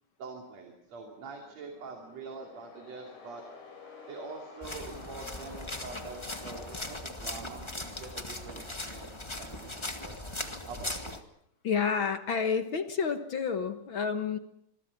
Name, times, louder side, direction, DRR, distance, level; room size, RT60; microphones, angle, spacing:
voice 1, 0.2-3.4 4.1-9.1 9.4-11.2, right 4 dB, 60° right, 3 dB, 3.9 m, -45 dB
sound 1, 0.9-8.0, left 4 dB, 70° left, 5.7 m, -51 dB
sound 2, 4.6-11.2, left 2 dB, 15° left, 1.3 m, -39 dB
voice 2, 11.6-14.4, left 6 dB, 50° left, 9 dB, 1.7 m, -29 dB
27.0 x 22.5 x 5.9 m, 0.73 s
omnidirectional pair, 3.5 m